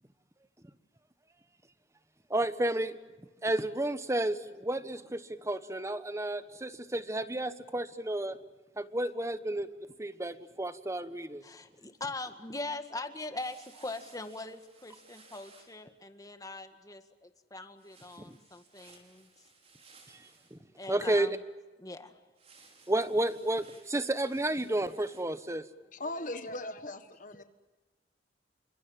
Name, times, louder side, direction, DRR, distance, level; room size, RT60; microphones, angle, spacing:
voice 1, 2.3-3.0 3.4-8.4 8.8-9.7 10.0-11.4 18.2-18.4 20.1-20.2 20.5-20.6 20.9-21.4 22.9-25.6, right 1 dB, 15° right, 12 dB, 1.2 m, -31 dB
voice 2, 11.4-19.3 20.8-21.3 21.8-22.1, left 2 dB, 20° left, 8 dB, 1.9 m, -41 dB
sound 1, 13.4-15.8 17.8-20.6 22.4-25.3, right 4 dB, 35° right, 5.8 m, -59 dB
voice 3, 25.9-27.4, left 2 dB, 50° left, 9 dB, 1.4 m, -39 dB
29.0 x 25.5 x 7.5 m, 1.2 s
head